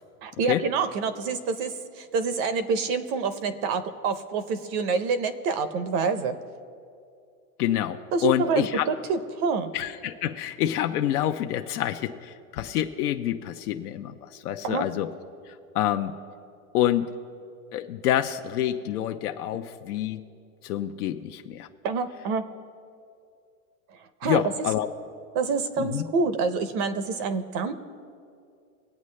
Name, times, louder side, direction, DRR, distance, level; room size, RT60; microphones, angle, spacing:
voice 1, 0.2-6.3 8.1-9.7 14.6-14.9 21.8-22.4 24.2-24.4 25.3-27.7, right 4 dB, 30° right, 11 dB, 0.5 m, -27 dB
voice 2, 7.6-8.9 9.7-15.1 15.5-16.1 16.7-17.1 17.7-20.2 20.6-21.7 24.2-24.9 25.8-26.0, left 12 dB, 80° left, 6 dB, 0.8 m, -27 dB
22.0 x 8.5 x 3.2 m, 2.4 s
supercardioid pair, 155°, 45 cm